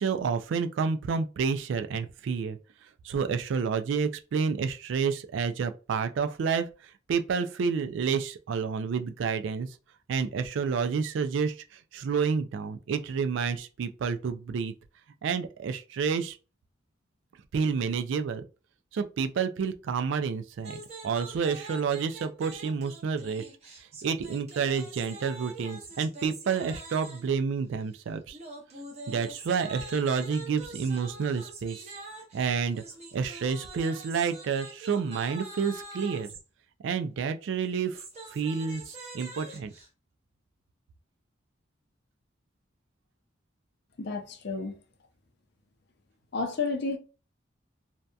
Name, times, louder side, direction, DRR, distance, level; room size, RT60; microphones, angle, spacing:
voice 1, 0.0-2.6 3.0-9.7 10.1-14.7 15.2-16.4 17.5-18.5 18.9-23.5 24.0-28.4 29.1-31.9 32.3-32.8 33.1-36.3 36.8-38.0 38.3-39.7, right 6 dB, 70° right, 0.3 m, -29 dB
sound 1, 20.6-27.4 28.3-36.4 37.6-39.9, right 2 dB, 35° right, 0.7 m, -44 dB
voice 2, 44.0-44.8 46.3-47.0, left 4 dB, 55° left, 0.5 m, -31 dB
2.7 x 2.2 x 2.3 m
head